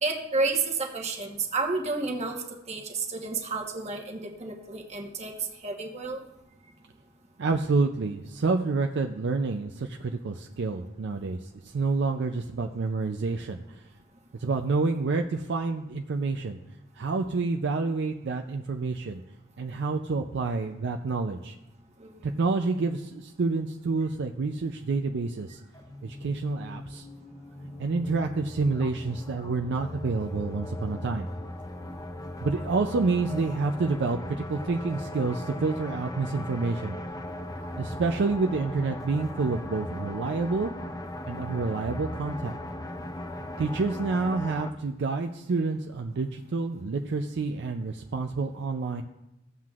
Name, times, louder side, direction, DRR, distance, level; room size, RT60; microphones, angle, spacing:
voice 1, 0.0-5.3 5.6-6.2 22.0-22.1, right 3 dB, 30° right, 2 dB, 1.1 m, -30 dB
voice 2, 7.4-13.8 14.4-16.6 17.0-19.2 19.6-21.6 22.2-25.6 26.0-27.1 27.8-31.3 32.4-37.0 37.8-40.7 41.3-42.6 43.6-49.0, right 3 dB, 55° right, 5 dB, 0.4 m, -28 dB
sound 1, 25.7-44.7, left 1 dB, 15° left, 0.4 m, -38 dB
15.0 x 7.5 x 2.4 m, 0.90 s
head